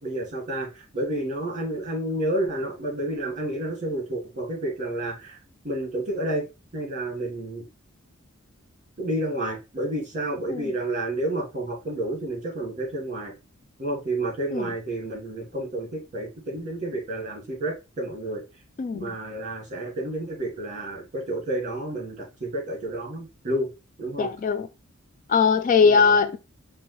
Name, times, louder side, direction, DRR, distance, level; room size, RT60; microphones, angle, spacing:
voice 1, 0.0-5.4 5.6-6.5 6.7-7.7 9.0-13.3 13.8-18.4 18.9-23.7 24.0-24.3 25.8-26.2, right 1 dB, 35° right, 2.1 m, -30 dB
voice 2, 18.8-19.1 24.2-24.7 25.3-26.4, left 5 dB, 40° left, 0.3 m, -20 dB
5.4 x 2.8 x 3.1 m
head